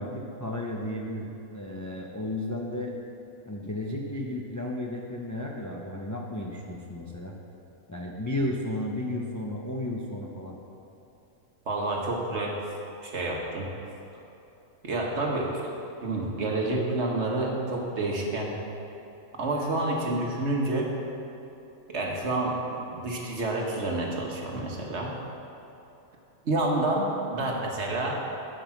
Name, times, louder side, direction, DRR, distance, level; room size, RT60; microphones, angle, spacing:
voice 1, 0.0-2.9 3.5-7.4 7.9-10.6, left 1 dB, 20° left, -1 dB, 0.4 m, -33 dB
voice 2, 11.7-12.6 13.0-13.7 14.8-15.7 16.0-18.6 19.3-20.9 21.9-25.2 26.4-28.2, right 2 dB, 55° right, -1 dB, 1.5 m, -29 dB
11.5 x 5.4 x 5.9 m, 2.9 s
omnidirectional pair, 1.5 m